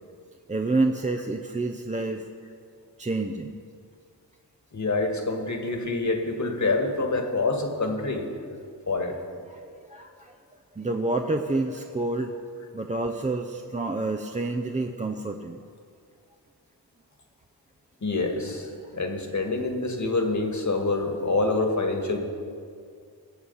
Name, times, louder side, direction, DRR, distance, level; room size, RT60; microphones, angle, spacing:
voice 1, 0.5-2.3 3.0-3.6 9.5-9.6 9.9-10.3 10.7-12.4 12.7-15.6, right 2 dB, 15° right, 4 dB, 0.7 m, -28 dB
voice 2, 4.7-8.3 8.9-9.2 18.0-22.2, left 3 dB, 45° left, 4 dB, 1.9 m, -26 dB
19.0 x 7.1 x 5.6 m, 2.3 s
cardioid pair, 60°, 42 cm